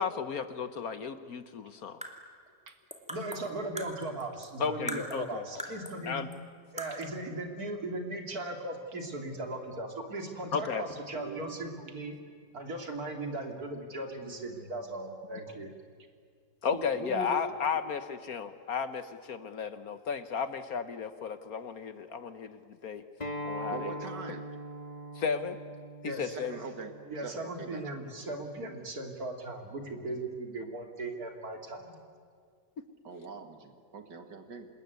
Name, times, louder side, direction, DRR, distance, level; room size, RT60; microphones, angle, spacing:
voice 1, 0.0-2.0 4.6-5.5 6.1-6.3 10.5-10.8 16.6-23.0 23.4-23.9 25.1-25.6 26.0-26.5, left 6 dB, 55° left, 11 dB, 1.3 m, -34 dB
sound 1, 1.8-4.6 4.9-6.1 6.3-6.4 6.8-7.2, equal, 5° right, 2.4 m, -42 dB
voice 2, 3.1-6.2 6.7-12.2 12.5-15.7 26.0-26.4 27.0-32.0, right 2 dB, 55° right, 3 dB, 3.4 m, -38 dB
voice 3, 17.0-17.4 23.7-24.5 26.3-26.9 27.2-27.8 33.0-34.7, right 3 dB, 70° right, 6 dB, 2.5 m, -42 dB
Acoustic guitar, 23.2-28.4, equal, 20° left, 2.2 m, -42 dB
26.5 x 21.0 x 9.5 m, 2.1 s
omnidirectional pair, 2.0 m